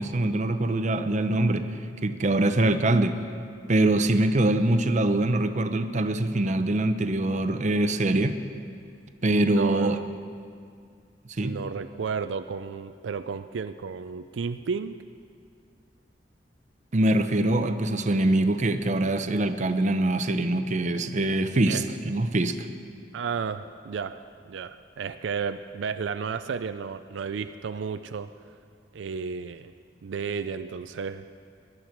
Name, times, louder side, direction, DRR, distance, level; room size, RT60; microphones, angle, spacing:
voice 1, 0.0-1.7 2.0-3.2 3.7-8.3 9.2-10.0 11.4-11.5 16.9-22.7, right 1 dB, 40° right, 9 dB, 0.7 m, -23 dB
voice 2, 9.3-10.1 11.4-15.0 21.7-21.9 23.1-28.3 28.9-29.7 30.0-31.3, right 5 dB, 85° right, 10 dB, 0.4 m, -33 dB
19.5 x 11.0 x 4.5 m, 2.2 s
head